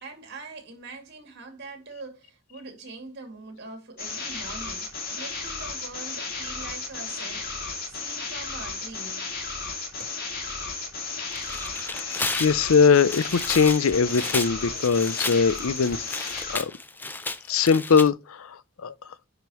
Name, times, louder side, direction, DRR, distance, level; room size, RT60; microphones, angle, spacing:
voice 1, 0.0-9.3 10.0-10.2, right 3 dB, 50° right, 2.5 m, -43 dB
sound 1, 4.0-16.6, left 4 dB, 45° left, 2.5 m, -34 dB
Tearing, 11.2-18.1, left 3 dB, 10° left, 0.4 m, -33 dB
voice 2, 11.7-16.0 16.2-16.7 17.5-18.9, left 5 dB, 80° left, 0.5 m, -22 dB
10.5 x 5.2 x 3.0 m
head